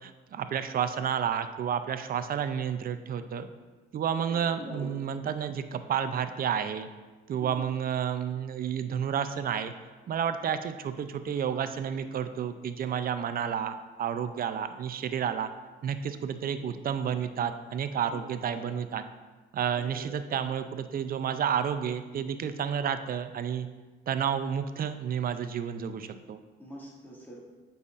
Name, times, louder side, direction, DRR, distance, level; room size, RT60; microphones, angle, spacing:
voice 1, 0.0-3.5 3.9-6.9 7.3-9.7 10.1-15.5 15.8-19.0 19.5-23.7 24.1-26.4, right 8 dB, 50° right, 10 dB, 0.5 m, -31 dB
voice 2, 4.3-4.9 7.4-7.7 18.1-18.2 18.5-18.7 19.7-20.1 26.6-27.4, right 1 dB, 10° left, -5 dB, 2.1 m, -44 dB
8.0 x 5.6 x 2.5 m, 1.3 s
cardioid pair, 90°, 20 cm